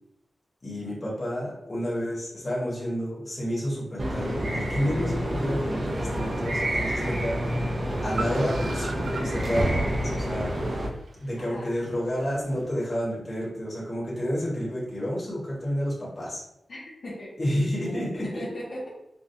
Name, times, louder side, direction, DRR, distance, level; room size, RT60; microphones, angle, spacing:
voice 1, 0.6-7.4 8.0-10.5 11.2-16.4 17.4-18.4, equal, 25° left, -7 dB, 1.5 m, -30 dB
sound 1, 4.0-10.9, equal, 50° right, 0.8 m, -28 dB
Car, 5.4-12.7, right 3 dB, 65° right, 0.4 m, -43 dB
voice 2, 11.4-11.7 16.7-18.9, left 1 dB, 60° left, -7 dB, 1.1 m, -38 dB
6.0 x 2.4 x 2.7 m, 0.80 s
wide cardioid pair, 165°, 0 cm